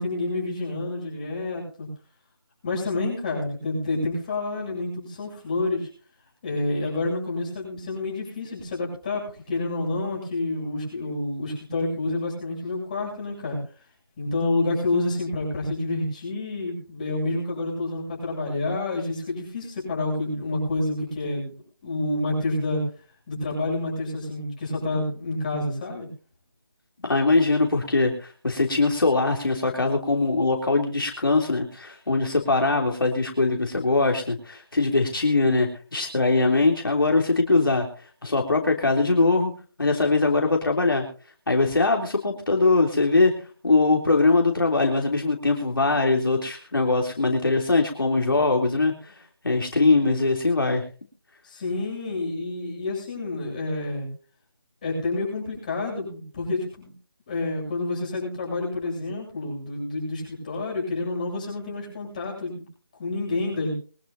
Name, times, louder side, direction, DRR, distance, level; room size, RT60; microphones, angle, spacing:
voice 1, 0.0-1.9 2.6-5.9 6.4-13.6 14.2-21.5 21.8-22.8 23.3-26.1 51.4-54.1 54.8-56.9 57.3-62.6 63.0-63.7, left 2 dB, 20° left, -2 dB, 7.9 m, -28 dB
voice 2, 27.0-37.9 38.2-39.5 39.8-41.0 41.5-43.3 43.6-49.1 49.4-50.8, left 3 dB, 65° left, 1 dB, 3.3 m, -22 dB
23.5 x 12.5 x 2.8 m, 0.39 s
figure-of-eight pair, 170°, 12 cm